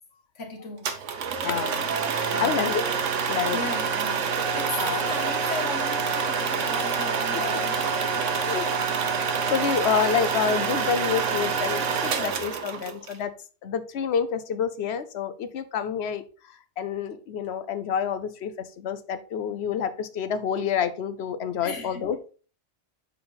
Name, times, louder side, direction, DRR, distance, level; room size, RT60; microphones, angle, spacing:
voice 1, 0.3-1.0 2.3-2.8 3.5-8.3 21.6-22.0, left 4 dB, 80° left, 1.6 m, -37 dB
sound 1, 0.8-13.2, right 5 dB, 85° right, 1.2 m, -27 dB
voice 2, 1.4-1.8 2.4-2.8 3.3-3.6 4.8-5.0 7.3-7.9 8.5-8.7 9.1-13.3 13.6-22.2, left 7 dB, 65° left, 0.9 m, -28 dB
6.6 x 4.5 x 3.9 m
omnidirectional pair, 1.2 m